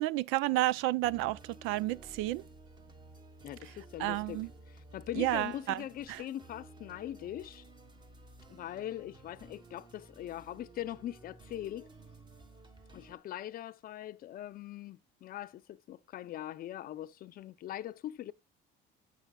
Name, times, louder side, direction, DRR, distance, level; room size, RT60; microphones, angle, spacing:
voice 1, 0.0-2.4 4.0-4.5 5.2-5.8 6.1-6.2, right 16 dB, 80° right, 0.5 m, -31 dB
sound 1, 1.0-13.2, right 2 dB, 20° right, 1.4 m, -54 dB
voice 2, 3.4-4.4 4.9-7.6 8.5-11.9 12.9-18.3, left 12 dB, 45° left, 0.6 m, -41 dB
16.5 x 5.6 x 2.3 m
cardioid pair, 135°, 21 cm